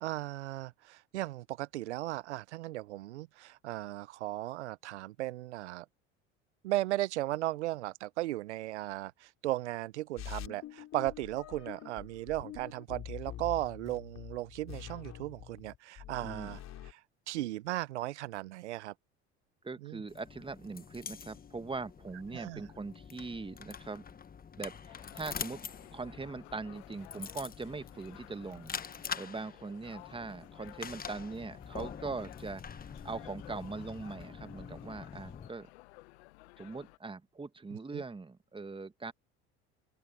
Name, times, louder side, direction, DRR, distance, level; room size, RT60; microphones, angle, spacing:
voice 1, 0.0-5.9 6.6-16.6 16.8-17.0 17.3-18.9 19.8-20.0 22.3-22.6 37.9-38.0, right 16 dB, 85° right, 0.7 m, -36 dB
sound 1, 10.2-16.9, left 12 dB, 50° left, 3.4 m, -46 dB
voice 2, 16.2-16.6 19.6-24.0 24.6-35.7 36.6-39.1, right 3 dB, 15° right, 1.5 m, -41 dB
sound 2, 20.1-35.5, left 6 dB, 25° left, 1.2 m, -45 dB
sound 3, 24.9-37.0, left 22 dB, 75° left, 0.9 m, -55 dB
open air
hypercardioid pair, 70°, 33 cm